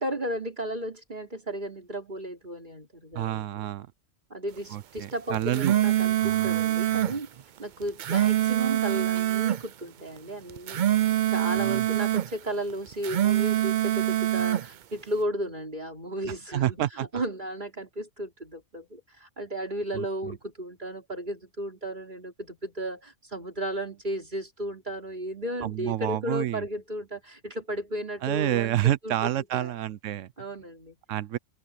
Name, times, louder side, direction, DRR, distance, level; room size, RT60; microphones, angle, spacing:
voice 1, 0.0-3.7 4.3-7.3 7.6-10.8 11.3-28.8 29.0-29.7 30.4-31.0, right 1 dB, 40° right, 4.0 m, -34 dB
voice 2, 3.1-3.9 4.7-5.7 6.2-6.6 6.9-7.2 11.6-11.9 16.5-17.1 19.9-20.4 25.6-26.7 28.2-30.3 31.1-31.4, right 12 dB, 85° right, 1.0 m, -29 dB
sound 1, 5.3-7.2 7.8-9.6 10.5-12.3 12.9-14.7, right 13 dB, 55° right, 0.5 m, -24 dB
omnidirectional pair, 1.3 m